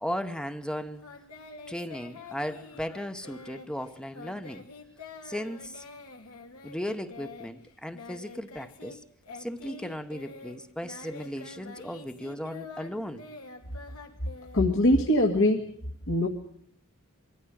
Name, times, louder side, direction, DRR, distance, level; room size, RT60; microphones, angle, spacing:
voice 1, 0.0-1.0 1.7-4.7 5.2-5.8 6.6-9.0 9.4-13.3, equal, 5° left, 0.9 m, -36 dB
Singing, 1.0-9.0 9.2-15.1, left 3 dB, 85° left, 3.1 m, -46 dB
voice 2, 14.5-15.6 16.1-16.3, left 1 dB, 65° left, 2.0 m, -22 dB
23.5 x 14.5 x 9.1 m
head